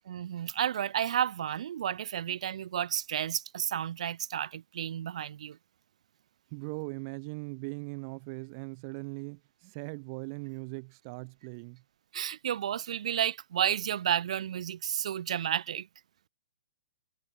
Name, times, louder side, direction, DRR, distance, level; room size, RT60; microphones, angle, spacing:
voice 1, 0.1-5.6 12.1-15.9, right 10 dB, 65° right, 0.4 m, -31 dB
voice 2, 6.5-11.8, right 32 dB, 30° right, 1.4 m, -40 dB
hypercardioid pair, 160°, 4 cm